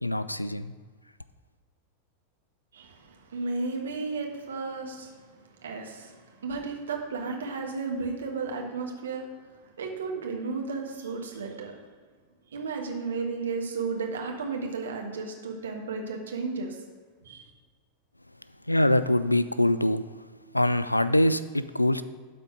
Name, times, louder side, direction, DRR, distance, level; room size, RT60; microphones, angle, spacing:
voice 1, 0.0-0.7 18.7-20.0 20.5-22.0, left 1 dB, 85° left, 14 dB, 0.3 m, -24 dB
voice 2, 2.7-11.8 12.5-16.8 17.2-17.5, right 4 dB, 65° right, 2 dB, 1.4 m, -34 dB
12.5 x 4.3 x 5.0 m, 1.5 s
figure-of-eight pair, 90°, 0 cm